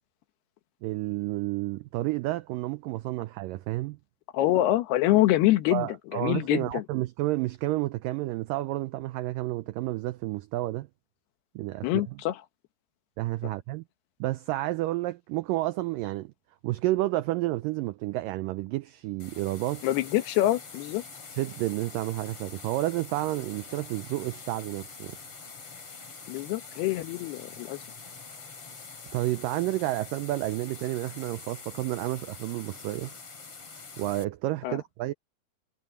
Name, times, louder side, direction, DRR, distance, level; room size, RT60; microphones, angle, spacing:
voice 1, 0.8-4.0 5.7-10.9 11.6-11.9 13.2-13.8 14.2-16.3 16.6-19.9 21.3-25.2 29.1-33.1 34.0-35.1, right 17 dB, 90° right, 1.9 m, -30 dB
voice 2, 4.3-6.8 11.8-12.4 19.8-21.0 26.3-27.8 34.6-34.8, left 15 dB, 80° left, 3.2 m, -25 dB
sound 1, 19.2-34.2, left 4 dB, 35° left, 4.6 m, -45 dB
omnidirectional pair, 4.5 m